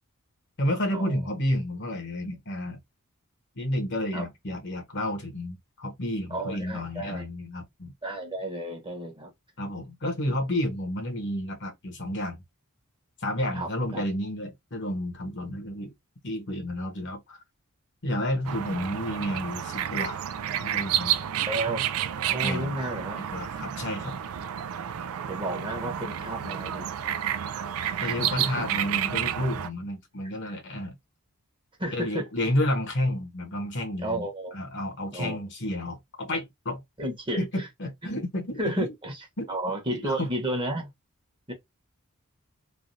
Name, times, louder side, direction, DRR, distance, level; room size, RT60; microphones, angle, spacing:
voice 1, 0.6-2.8 3.5-7.9 9.6-12.4 13.2-15.9 16.2-17.4 18.0-20.2 20.5-21.3 22.4-22.7 23.2-24.2 28.0-31.0 31.9-34.3 34.5-36.8 37.4-38.9 39.4-39.5 39.9-40.3, left 1 dB, 55° left, 1.0 m, -31 dB
voice 2, 6.3-7.2 8.0-9.3 10.3-10.4 13.5-14.0 21.4-21.9 22.2-23.2 25.3-26.9 28.0-28.5 30.4-30.5 31.8-32.3 34.0-34.5 35.1-35.4 37.0-37.7 38.0-38.1 38.6-39.1 39.5-40.9 41.5-41.6, right 1 dB, 20° right, 1.0 m, -32 dB
sound 1, 18.4-29.7, right 10 dB, 75° right, 0.4 m, -30 dB
3.2 x 2.3 x 2.6 m
head